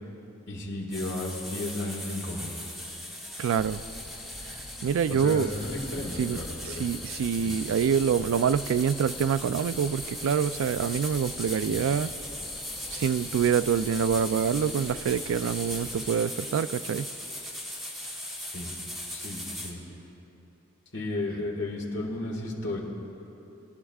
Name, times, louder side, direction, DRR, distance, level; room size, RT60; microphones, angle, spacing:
voice 1, 0.5-2.5 5.1-6.9 7.4-7.5 11.7-11.8 18.5-18.7 19.1-19.8 20.9-22.8, left 1 dB, 60° left, -2 dB, 1.8 m, -33 dB
sound 1, 0.9-19.7, left 1 dB, ahead, 1.2 m, -38 dB
voice 2, 3.4-3.8 4.4-5.5 6.2-12.1 12.9-17.1, right 7 dB, 75° right, 15 dB, 0.3 m, -26 dB
Cricket, 3.6-16.1, left 2 dB, 20° left, 0.5 m, -46 dB
21.5 x 11.0 x 2.4 m, 3.0 s
head